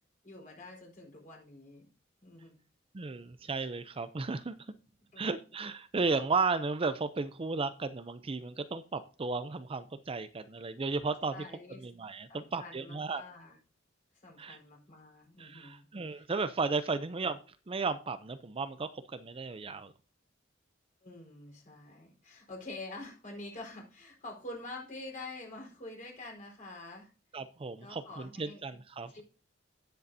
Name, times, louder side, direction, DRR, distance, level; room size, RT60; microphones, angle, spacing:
voice 1, 0.2-1.9 2.2-2.5 5.1-5.2 11.3-11.9 12.3-13.6 14.2-16.2 21.0-27.1 27.8-28.6 29.1-29.2, left 2 dB, 45° left, -1 dB, 4.4 m, -47 dB
voice 2, 2.9-4.6 5.2-11.4 11.8-13.2 14.4-14.6 15.4-17.4 17.7-19.9 27.3-29.2, right 4 dB, 30° right, 11 dB, 0.5 m, -34 dB
17.0 x 6.8 x 2.7 m, 0.35 s
head